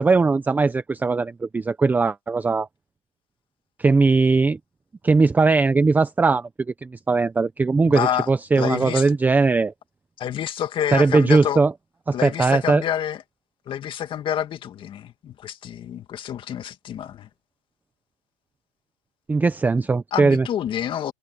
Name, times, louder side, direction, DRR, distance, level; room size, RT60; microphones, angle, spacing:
voice 1, 0.0-2.7 3.8-4.6 5.0-6.5 6.8-9.7 10.9-11.7 12.1-12.8 19.3-20.5, right 4 dB, 10° right, 1.0 m, -19 dB
voice 2, 7.9-8.3 8.5-9.1 10.2-11.6 12.1-13.2 13.7-17.3 20.1-21.1, left 10 dB, 25° left, 2.3 m, -28 dB
hypercardioid pair, 135°, 21 cm